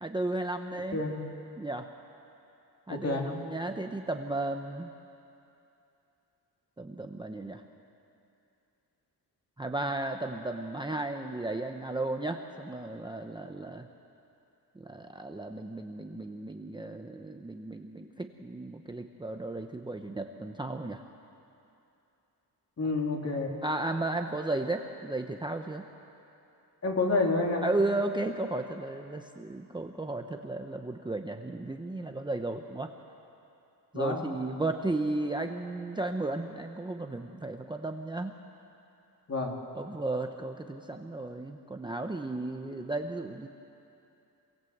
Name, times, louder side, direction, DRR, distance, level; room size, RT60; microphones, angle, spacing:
voice 1, 0.0-1.0 1.6-1.9 2.9-4.9 6.8-7.6 9.6-13.9 14.8-21.0 23.6-25.8 27.6-32.9 33.9-38.3 39.7-43.5, right 2 dB, 10° right, 4 dB, 0.8 m, -34 dB
voice 2, 2.9-3.3 22.8-23.6 26.8-27.7 33.9-34.3 39.3-39.6, left 3 dB, 40° left, 0 dB, 3.1 m, -29 dB
25.5 x 23.0 x 8.0 m, 2.8 s
wide cardioid pair, 155°, 40 cm